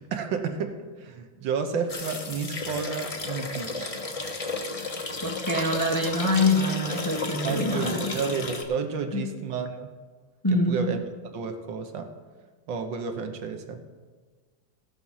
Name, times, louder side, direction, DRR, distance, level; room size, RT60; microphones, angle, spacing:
voice 1, 0.0-4.0 7.4-9.9 10.7-11.0 11.3-12.1 12.7-13.8, right 5 dB, 75° right, 6 dB, 1.6 m, -31 dB
sound 1, 1.9-8.6, left 3 dB, 50° left, 0.4 m, -33 dB
voice 2, 5.2-8.1 9.1-9.2 10.4-10.9, left 2 dB, 15° left, -1 dB, 0.9 m, -25 dB
16.0 x 6.0 x 5.6 m, 1.4 s
omnidirectional pair, 2.1 m